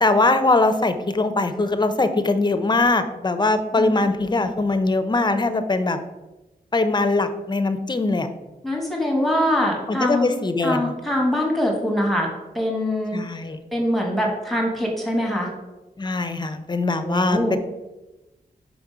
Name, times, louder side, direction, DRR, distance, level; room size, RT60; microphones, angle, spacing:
voice 1, 0.0-6.0 6.7-8.3 9.9-10.9 13.1-13.6 16.0-17.6, left 2 dB, 25° left, 9 dB, 0.6 m, -21 dB
voice 2, 3.7-4.1 8.6-10.3 10.6-12.3 12.5-13.2 13.7-15.5 17.0-17.6, left 1 dB, ahead, -1 dB, 1.4 m, -23 dB
5.2 x 5.0 x 4.8 m, 1.1 s
wide cardioid pair, 105°, 16 cm